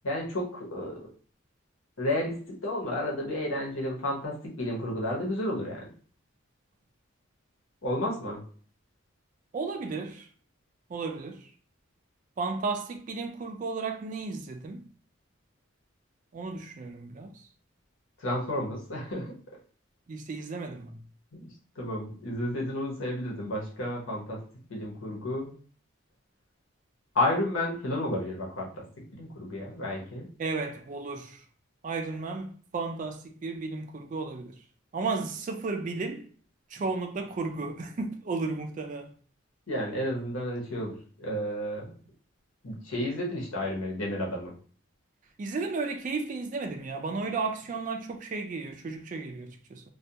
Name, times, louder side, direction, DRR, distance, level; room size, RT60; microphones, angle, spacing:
voice 1, 0.0-1.0 2.0-5.8 7.8-8.4 18.2-19.3 21.3-21.5 21.8-24.4 24.7-25.5 27.1-28.8 29.1-30.3 39.7-41.9 42.6-44.5, left 1 dB, 70° left, 0.8 m, -31 dB
voice 2, 9.5-10.3 10.9-11.5 12.4-14.8 16.3-17.5 20.1-21.0 30.4-31.4 31.8-34.6 34.9-36.3 36.7-39.1 45.4-49.8, right 4 dB, 40° right, 0.3 m, -34 dB
2.3 x 2.2 x 2.7 m
head